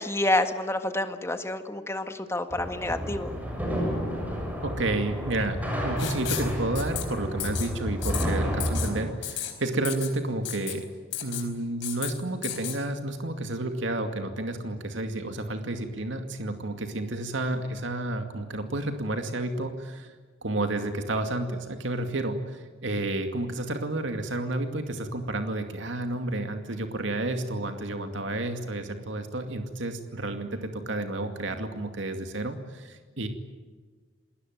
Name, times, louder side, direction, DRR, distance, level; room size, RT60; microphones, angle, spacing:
voice 1, 0.0-3.3, left 1 dB, 15° left, 8 dB, 1.6 m, -28 dB
sound 1, 2.5-9.0, equal, 10° right, 6.9 m, -31 dB
voice 2, 4.6-5.6 5.8-10.9 11.2-20.1 20.4-33.3, right 2 dB, 70° right, 6 dB, 2.3 m, -31 dB
Writing, 6.0-6.5 6.8-7.0 7.4-7.7 8.0-8.2 8.6-8.9 9.2-9.5 9.8-10.1 10.5-10.7 11.1-11.5 11.8-12.1 12.4-12.8, left 12 dB, 60° left, 4.3 m, -33 dB
28.0 x 20.0 x 9.3 m, 1.5 s
head